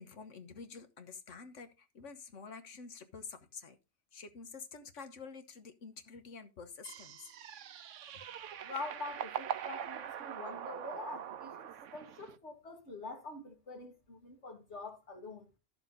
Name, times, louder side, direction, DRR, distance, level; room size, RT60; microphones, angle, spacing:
voice 1, 0.0-3.8 4.1-7.3, left 5 dB, 85° left, 1.5 m, -49 dB
sound 1, 6.8-12.4, right 9 dB, 85° right, 1.1 m, -42 dB
voice 2, 8.6-15.5, left 3 dB, 65° left, 2.1 m, -45 dB
11.5 x 6.8 x 3.9 m
omnidirectional pair, 1.2 m